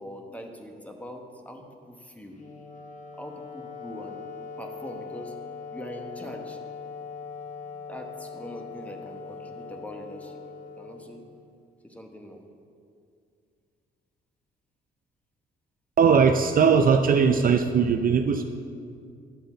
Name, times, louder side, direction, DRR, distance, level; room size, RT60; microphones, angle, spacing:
voice 1, 0.0-2.4 3.2-4.2 4.6-5.3 5.7-6.6 7.9-10.4 10.8-11.2 11.8-12.4, equal, 5° left, 3 dB, 1.0 m, -42 dB
Wind instrument woodwind instrument, 2.3-11.6, left 5 dB, 40° left, 1.0 m, -41 dB
voice 2, 16.0-18.4, right 6 dB, 45° right, 6 dB, 0.5 m, -19 dB
11.0 x 3.8 x 6.9 m, 2.3 s
cardioid pair, 90°, 20 cm